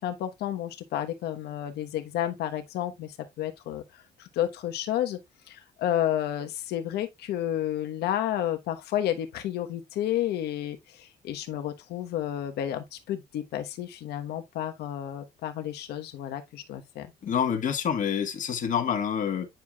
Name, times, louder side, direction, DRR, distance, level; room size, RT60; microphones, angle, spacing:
voice 1, 0.0-3.8 4.2-5.2 5.5-17.1, left 11 dB, 75° left, 1.2 m, -31 dB
voice 2, 17.2-19.5, left 8 dB, 50° left, 1.6 m, -27 dB
9.2 x 4.7 x 2.4 m
cardioid pair, 110°, 17 cm